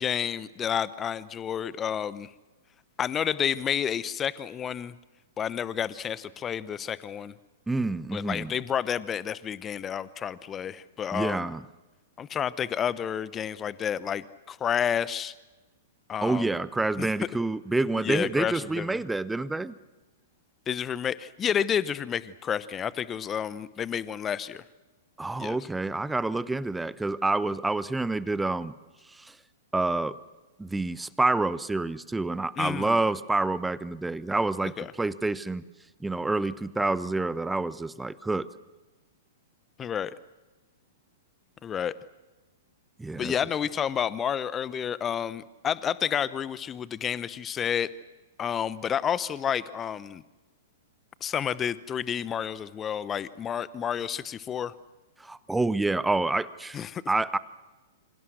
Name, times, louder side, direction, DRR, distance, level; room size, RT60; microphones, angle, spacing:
voice 1, 0.0-2.3 3.0-4.9 5.4-7.3 8.1-11.5 12.2-15.3 16.1-16.5 17.0-17.1 18.0-19.0 20.7-24.6 25.4-25.6 32.6-33.0 34.8-34.9 39.8-40.2 41.6-41.9 43.2-47.9 48.4-50.2 51.2-54.7 56.7-57.0, left 8 dB, 20° left, 18 dB, 0.8 m, -30 dB
voice 2, 7.7-8.5 11.1-11.6 16.2-19.8 25.2-28.7 29.1-29.3 29.7-30.2 30.6-35.6 36.0-38.5 43.0-43.3 55.2-56.8 57.1-57.4, right 2 dB, 5° right, 17 dB, 0.9 m, -28 dB
28.5 x 27.0 x 6.5 m, 1.2 s
figure-of-eight pair, 105°, 0 cm